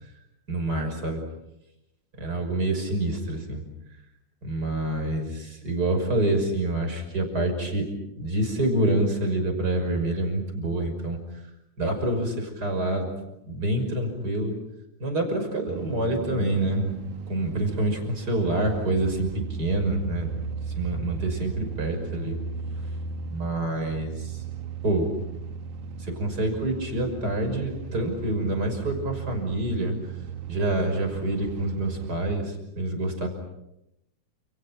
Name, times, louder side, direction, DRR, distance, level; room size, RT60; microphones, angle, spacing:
voice 1, 0.5-1.2 2.2-3.6 4.4-7.9 8.2-11.2 11.8-13.1 13.5-14.5 15.0-16.9 17.3-20.3 20.8-22.4 22.7-22.9 23.3-24.4 24.8-25.1 26.0-29.9 30.5-33.3, right 1 dB, 30° right, 5 dB, 6.3 m, -27 dB
sound 1, 15.7-32.4, right 6 dB, 75° right, 2.6 m, -36 dB
30.0 x 29.0 x 6.1 m, 0.87 s
omnidirectional pair, 3.5 m